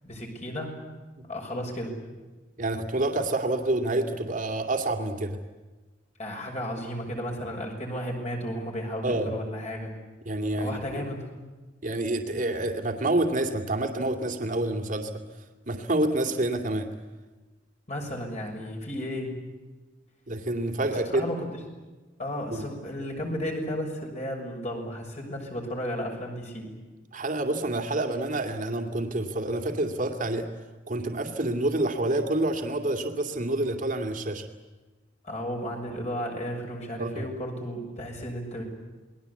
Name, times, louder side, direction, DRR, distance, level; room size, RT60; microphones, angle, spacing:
voice 1, 0.0-0.8 1.3-1.9 6.2-9.9 10.6-11.3 17.9-19.3 21.1-21.4 22.2-26.7 35.2-38.6, equal, 35° left, 1 dB, 6.4 m, -33 dB
voice 2, 2.6-5.4 9.0-9.3 10.3-11.0 11.8-15.1 15.7-16.9 20.3-21.3 22.5-22.6 27.1-30.4 30.9-34.4 37.0-37.2, right 2 dB, 45° right, 5 dB, 2.5 m, -28 dB
28.0 x 21.0 x 8.4 m, 1.2 s
head